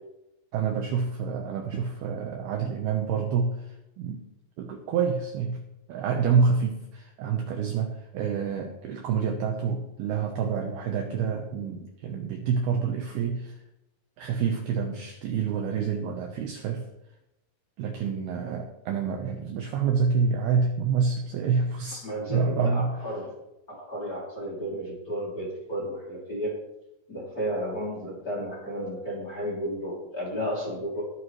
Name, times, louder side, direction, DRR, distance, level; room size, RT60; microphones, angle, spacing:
voice 1, 0.5-4.2 4.6-5.6 5.9-13.6 14.2-16.9 17.8-23.0, right 5 dB, 80° right, 3 dB, 2.3 m, -27 dB
voice 2, 22.0-23.3 23.7-26.6 27.1-31.1, equal, 25° left, -4 dB, 2.4 m, -33 dB
21.5 x 9.1 x 3.2 m, 0.88 s
omnidirectional pair, 5.9 m